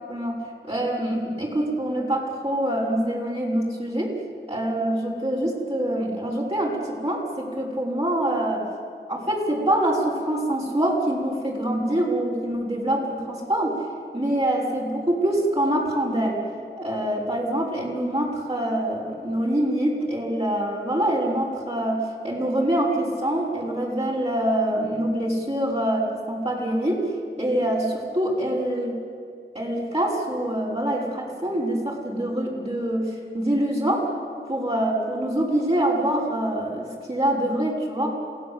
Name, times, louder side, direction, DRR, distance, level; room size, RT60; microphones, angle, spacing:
voice 1, 0.1-4.1 4.5-8.6 9.1-13.8 14.1-16.4 16.8-27.1 27.4-29.0 29.5-34.1 34.5-38.1, right 1 dB, 30° right, -6 dB, 5.8 m, -25 dB
28.0 x 17.0 x 8.1 m, 2.4 s
wide cardioid pair, 40°, 20 cm